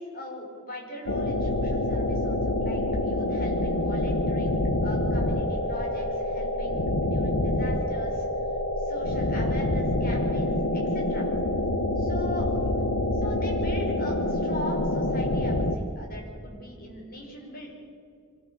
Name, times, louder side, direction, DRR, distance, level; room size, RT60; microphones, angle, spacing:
voice 1, 0.0-8.3 8.8-11.3 12.0-12.7 13.1-17.7, left 1 dB, 45° left, 0 dB, 5.3 m, -40 dB
sound 1, 1.1-15.8, left 1 dB, 75° left, 1.2 m, -26 dB
24.5 x 14.5 x 7.1 m, 2.5 s
head